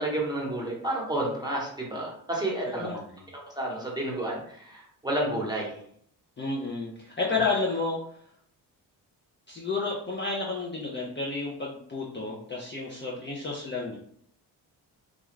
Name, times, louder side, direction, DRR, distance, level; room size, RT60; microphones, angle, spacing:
voice 1, 0.0-2.9 3.6-5.7, right 1 dB, 10° right, -3 dB, 1.0 m, -30 dB
voice 2, 2.7-3.2 6.4-8.0 9.5-14.0, left 3 dB, 25° left, -4 dB, 0.5 m, -31 dB
2.5 x 2.2 x 3.1 m, 0.65 s
cardioid pair, 70°, 41 cm